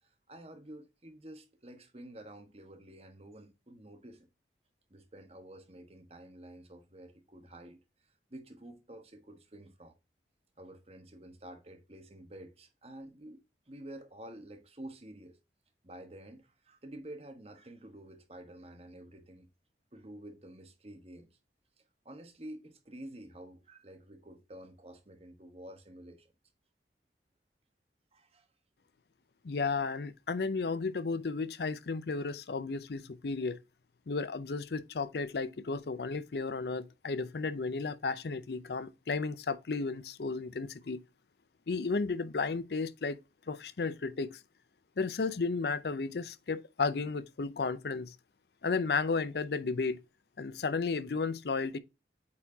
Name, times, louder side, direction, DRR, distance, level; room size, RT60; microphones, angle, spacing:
voice 1, 0.0-4.3 4.9-7.8 8.3-9.9 10.6-15.4 15.8-19.5 19.9-21.4 22.0-26.3 28.1-28.5, right 1 dB, 35° right, 1.3 m, -50 dB
voice 2, 29.4-33.6 34.1-41.0 41.7-43.2 43.5-44.4 45.0-48.2 48.6-50.0 50.4-51.8, left 4 dB, 65° left, 0.5 m, -33 dB
8.5 x 4.4 x 2.7 m
head